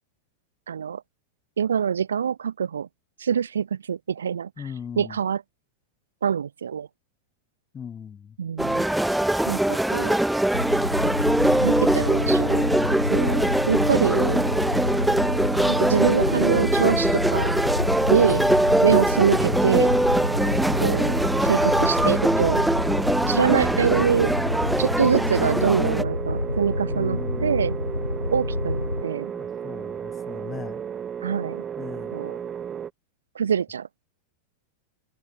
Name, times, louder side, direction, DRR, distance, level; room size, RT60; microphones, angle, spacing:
voice 1, 0.7-1.0 1.6-2.9 3.2-4.5 5.0-5.4 6.2-6.9 8.4-8.9 9.4-10.2 11.4-14.4 15.7-17.5 18.1-18.4 18.8-19.9 20.8-21.1 21.4-22.6 23.3-24.3 24.8-27.8 28.3-29.3 31.2-31.6 32.1-32.4 33.3-33.9, right 7 dB, 70° right, 1.0 m, -25 dB
voice 2, 4.6-5.2 7.7-8.4 14.0-14.2 18.3-18.7 26.9-27.7 29.3-30.8 31.8-32.2, left 7 dB, 20° left, 2.2 m, -39 dB
sound 1, 8.6-26.0, right 1 dB, 5° right, 0.3 m, -22 dB
sound 2, 10.5-29.0, left 2 dB, 85° left, 0.9 m, -28 dB
sound 3, 13.8-32.9, right 8 dB, 25° right, 0.7 m, -34 dB
figure-of-eight pair, 90°, 0 cm